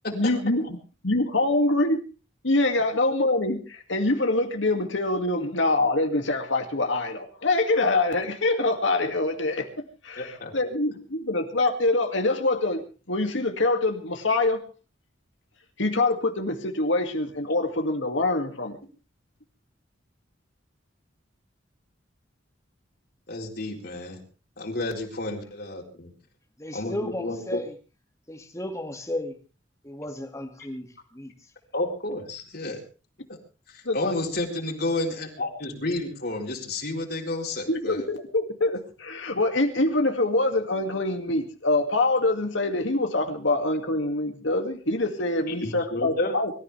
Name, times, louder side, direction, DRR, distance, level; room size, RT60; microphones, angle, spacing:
voice 1, 0.1-0.7 1.0-2.0 2.4-9.7 10.0-12.8 13.1-14.6 15.8-18.8 33.9-34.2 37.7-46.5, left 2 dB, 75° left, 5 dB, 2.4 m, -25 dB
voice 2, 10.2-10.5 23.3-24.2 24.6-26.1 26.7-27.6 31.7-32.8 33.7-38.1 45.6-46.3, left 2 dB, 55° left, 1 dB, 3.9 m, -31 dB
voice 3, 26.6-27.7 28.3-29.4 29.8-31.3, left 1 dB, 15° left, 5 dB, 2.3 m, -34 dB
25.0 x 14.0 x 3.4 m, 0.34 s
head